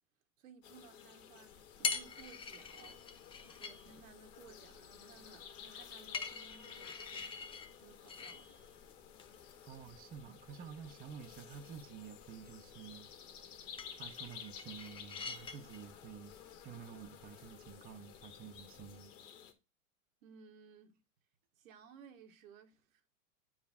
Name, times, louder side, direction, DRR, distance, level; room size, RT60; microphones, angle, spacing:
voice 1, 0.4-3.0 3.4-7.5 7.8-8.6 20.2-21.0 21.5-23.0, right 6 dB, 75° right, 1.5 m, -59 dB
sound 1, 0.6-19.5, left 8 dB, 65° left, 1.9 m, -54 dB
sound 2, 1.5-19.0, left 5 dB, 15° left, 0.6 m, -47 dB
voice 2, 9.6-13.1 14.0-19.1, right 7 dB, 20° right, 0.7 m, -50 dB
8.7 x 4.8 x 3.5 m
supercardioid pair, 130°, 40 cm